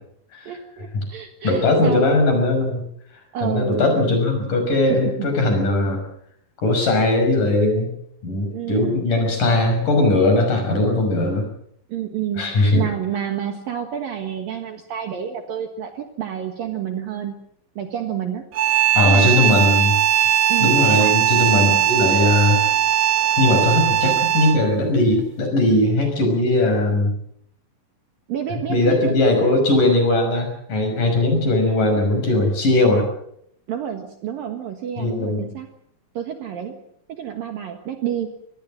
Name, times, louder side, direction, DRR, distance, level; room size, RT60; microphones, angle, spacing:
voice 1, 0.5-2.1 3.3-3.9 4.9-5.3 8.5-9.0 11.9-17.4 17.8-18.4 19.0-19.5 20.5-21.1 28.3-29.1 33.7-35.7 36.1-36.8 37.1-38.3, right 9 dB, 60° right, 6 dB, 2.8 m, -29 dB
voice 2, 1.4-2.8 3.4-6.0 6.6-7.9 8.2-11.4 12.4-12.8 19.0-20.0 20.6-22.6 23.4-27.1 28.7-33.1 35.0-35.5, left 2 dB, 45° left, 4 dB, 7.2 m, -19 dB
sound 1, 18.5-24.7, right 11 dB, 80° right, 1.8 m, -19 dB
25.0 x 19.0 x 7.5 m, 0.71 s
omnidirectional pair, 5.4 m